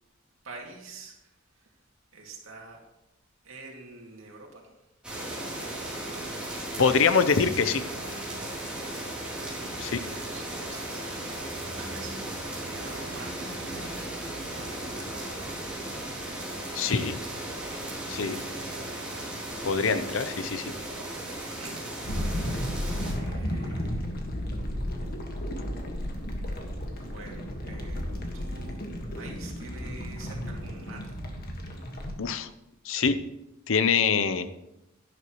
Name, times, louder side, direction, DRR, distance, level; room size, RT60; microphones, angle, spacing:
voice 1, 0.4-1.2 2.1-2.8 3.4-4.7 9.5-12.2 12.7-13.5 14.5-15.1 21.6-22.1 23.1-24.0 26.8-28.0 28.3-28.8 29.1-31.2, right 3 dB, 75° right, 0 dB, 2.3 m, -47 dB
sound 1, 5.0-23.1, right 1 dB, 5° right, 3.2 m, -36 dB
voice 2, 6.8-7.8 9.8-10.0 16.7-17.2 18.1-18.4 19.6-20.7 32.2-32.5 32.8-33.2 33.7-34.5, left 5 dB, 70° left, 12 dB, 0.7 m, -24 dB
sound 2, 22.0-32.1, equal, 50° left, 1.6 m, -33 dB
11.0 x 11.0 x 3.1 m, 0.91 s
head